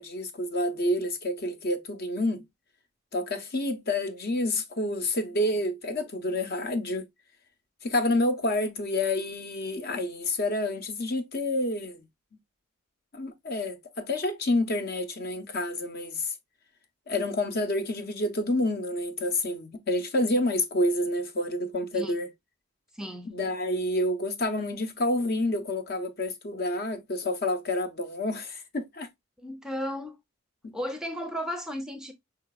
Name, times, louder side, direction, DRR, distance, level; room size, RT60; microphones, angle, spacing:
voice 1, 0.0-2.4 3.1-7.1 7.8-12.0 13.1-16.3 17.1-22.3 23.3-29.1 30.6-30.8, left 1 dB, 50° left, 0.8 m, -28 dB
voice 2, 22.9-23.3 29.4-30.2 30.7-32.1, equal, 5° right, 0.6 m, -34 dB
4.9 x 3.8 x 2.2 m
head